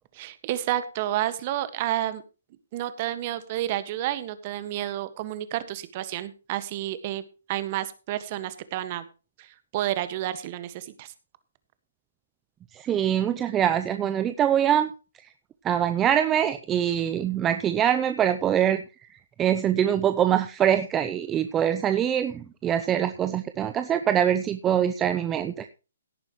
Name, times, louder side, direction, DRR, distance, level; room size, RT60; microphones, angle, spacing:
voice 1, 0.1-2.2 2.7-9.0 9.4-11.1, right 13 dB, 35° right, 13 dB, 1.6 m, -30 dB
voice 2, 12.7-14.9 15.6-18.8 19.4-25.7, right 9 dB, 15° right, 10 dB, 0.6 m, -24 dB
17.0 x 9.0 x 3.1 m, 0.32 s
hypercardioid pair, 155°, 0 cm